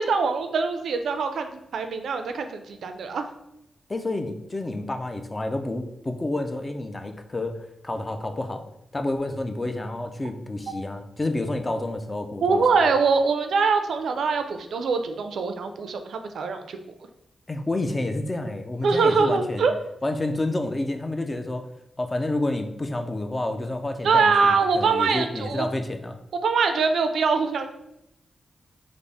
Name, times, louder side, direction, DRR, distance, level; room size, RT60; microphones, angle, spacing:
voice 1, 0.0-3.2 10.7-10.8 12.4-16.8 18.8-19.8 24.0-25.7 26.4-27.7, right 4 dB, 85° right, 7 dB, 0.3 m, -23 dB
voice 2, 3.9-7.6 7.8-8.6 8.9-12.9 17.5-19.7 20.0-21.7 22.0-26.2, left 2 dB, 25° left, 6 dB, 0.3 m, -29 dB
3.4 x 2.0 x 3.8 m, 0.82 s
wide cardioid pair, 105°, 0 cm